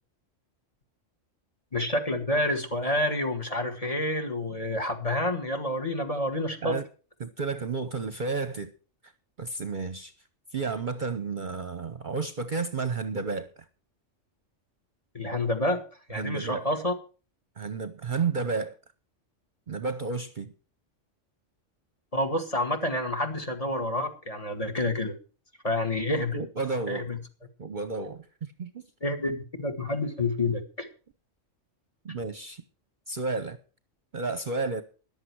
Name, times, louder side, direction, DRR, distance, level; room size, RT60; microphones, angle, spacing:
voice 1, 1.7-6.8 15.1-15.8 16.1-16.9 22.1-25.2 25.6-26.4 26.9-27.2 29.0-30.9, left 1 dB, 30° left, 1.9 m, -28 dB
voice 2, 7.2-8.7 9.4-10.1 10.5-13.5 16.1-16.6 17.6-18.8 19.7-20.5 26.3-27.1 27.6-28.8 32.0-32.6 33.1-33.6 34.1-34.8, right 4 dB, 45° right, 0.9 m, -31 dB
14.0 x 11.0 x 4.6 m
omnidirectional pair, 1.3 m